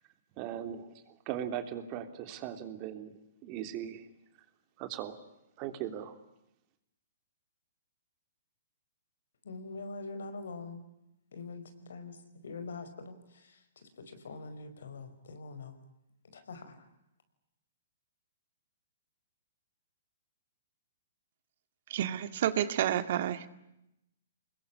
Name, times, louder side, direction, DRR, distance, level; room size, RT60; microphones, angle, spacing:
voice 1, 0.4-3.1 3.4-4.1 4.8-5.2 5.6-6.1, right 10 dB, 35° right, 8 dB, 3.3 m, -39 dB
voice 2, 9.4-10.8 11.3-12.2 12.4-13.6 14.0-15.8 16.3-16.7, left 3 dB, 75° left, 10 dB, 5.3 m, -43 dB
voice 3, 21.9-23.5, right 11 dB, 55° right, 12 dB, 2.0 m, -30 dB
25.5 x 21.5 x 10.0 m, 0.85 s
hypercardioid pair, 135°, 0 cm